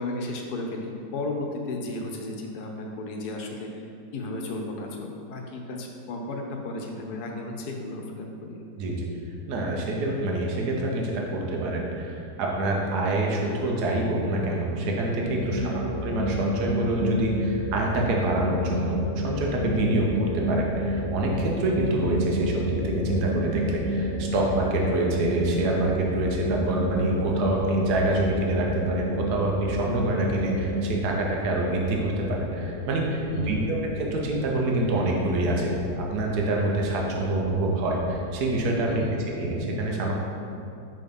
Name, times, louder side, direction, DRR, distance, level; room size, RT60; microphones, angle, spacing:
voice 1, 0.0-3.8 4.1-8.7 15.4-15.9 33.3-33.8 38.9-39.3, left 2 dB, 70° left, 1 dB, 1.2 m, -34 dB
voice 2, 9.5-20.1 20.3-39.0 39.4-40.1, right 2 dB, 70° right, -1 dB, 1.4 m, -26 dB
sound 1, 15.2-30.8, equal, 20° left, 0.8 m, -30 dB
sound 2, 19.5-39.0, left 1 dB, 40° left, 0.4 m, -40 dB
5.5 x 3.9 x 5.2 m, 2.7 s
omnidirectional pair, 1.8 m